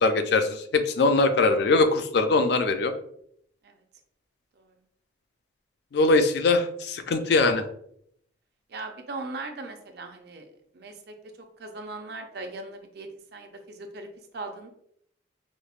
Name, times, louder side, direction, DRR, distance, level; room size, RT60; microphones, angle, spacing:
voice 1, 0.0-2.9 5.9-7.6, left 3 dB, 55° left, 7 dB, 0.3 m, -22 dB
voice 2, 8.7-14.1 14.3-14.7, right 2 dB, 55° right, 5 dB, 0.5 m, -39 dB
5.1 x 2.0 x 2.4 m, 0.70 s
head